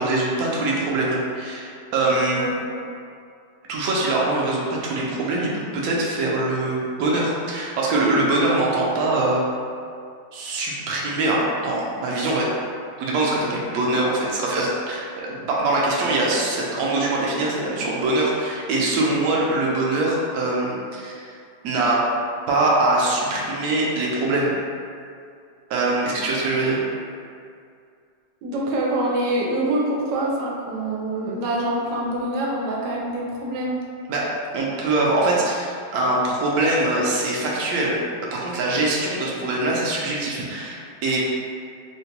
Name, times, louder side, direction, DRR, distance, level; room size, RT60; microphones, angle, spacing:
voice 1, 0.0-2.5 3.7-9.4 10.3-12.5 13.0-21.3 21.6-22.0 22.5-24.5 25.7-26.8 34.1-34.2 34.5-38.0 38.3-41.2, right 2 dB, 70° right, -4 dB, 1.0 m, -23 dB
voice 2, 2.3-3.0 28.4-33.8, right 1 dB, 90° right, -3 dB, 1.3 m, -25 dB
3.7 x 2.2 x 2.8 m, 2.3 s
omnidirectional pair, 1.9 m